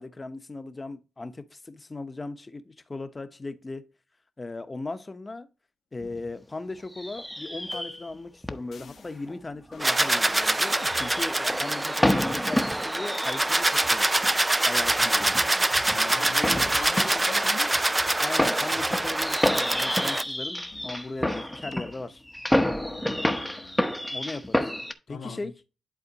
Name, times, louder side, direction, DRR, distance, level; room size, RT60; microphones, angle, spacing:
voice 1, 0.0-3.8 4.4-5.5 5.9-14.1 14.7-15.4 18.2-22.2 24.1-24.6 25.1-25.5, left 3 dB, 30° left, 1.0 m, -38 dB
sound 1, 6.0-6.4 6.9-8.2 8.4-8.6 9.0-13.9 14.2-14.3 14.8-24.9, left 1 dB, 5° left, 0.9 m, -29 dB
sound 2, 7.7-8.2 8.7-9.3 9.7-10.0 10.7-11.9 12.7-12.9 13.7-13.9 14.7-15.1 15.7-15.8 16.7-16.9 17.7-18.0 18.7-19.3 19.7-21.0 21.7-21.9 22.7-23.1, left 5 dB, 70° left, 1.0 m, -48 dB
sound 3, 9.8-20.2, right 1 dB, 20° right, 0.5 m, -25 dB
voice 2, 15.9-17.7 22.8-24.2 25.1-25.5, left 5 dB, 85° left, 1.6 m, -41 dB
11.0 x 4.2 x 2.9 m
cardioid pair, 65°, 0 cm